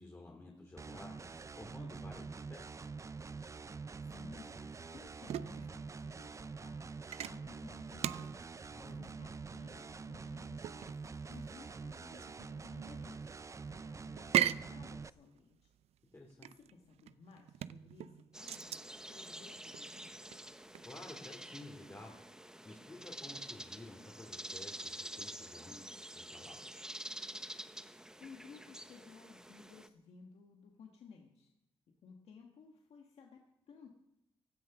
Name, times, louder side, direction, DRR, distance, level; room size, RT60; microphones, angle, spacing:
voice 1, 0.0-2.7 8.7-9.0 16.1-16.5 20.8-22.2 22.6-26.9, left 2 dB, 25° left, -1 dB, 2.6 m, -52 dB
sound 1, 0.8-15.1, right 4 dB, 30° right, 0.4 m, -46 dB
voice 2, 4.0-8.5 9.0-13.3 13.7-15.7 16.4-20.5 28.2-31.5 31.9-33.9, left 5 dB, 80° left, 1 dB, 1.6 m, -57 dB
sound 2, 4.4-21.0, right 11 dB, 85° right, 0.5 m, -41 dB
sound 3, 18.3-29.9, right 1 dB, 5° right, 1.0 m, -48 dB
16.0 x 12.5 x 6.0 m, 0.87 s
cardioid pair, 75°, 10 cm